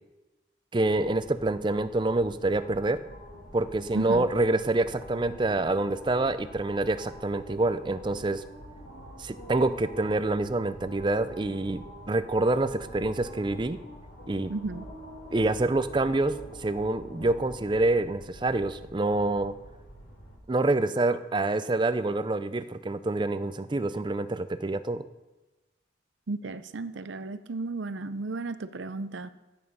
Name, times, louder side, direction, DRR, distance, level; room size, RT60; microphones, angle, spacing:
voice 1, 0.7-3.1 3.5-8.5 9.2-13.8 14.3-14.5 15.3-19.6 20.5-25.0, right 2 dB, 25° right, 12 dB, 0.4 m, -27 dB
sound 1, 0.9-20.4, equal, 80° left, 3.0 m, -46 dB
voice 2, 3.9-4.3 14.5-14.9 26.3-29.3, right 3 dB, 80° right, 12 dB, 0.6 m, -34 dB
12.0 x 8.6 x 5.4 m, 1.1 s
head